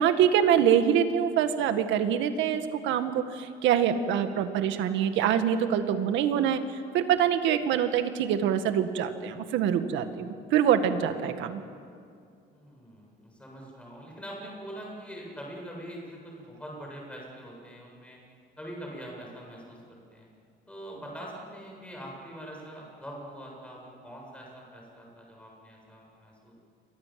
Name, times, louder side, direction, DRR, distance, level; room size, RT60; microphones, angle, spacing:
voice 1, 0.0-11.6, right 9 dB, 75° right, 8 dB, 2.0 m, -25 dB
voice 2, 12.5-18.2 18.6-20.3 20.7-26.5, equal, 5° left, -1 dB, 7.7 m, -43 dB
28.5 x 24.0 x 7.8 m, 2.3 s
cardioid pair, 155°, 20 cm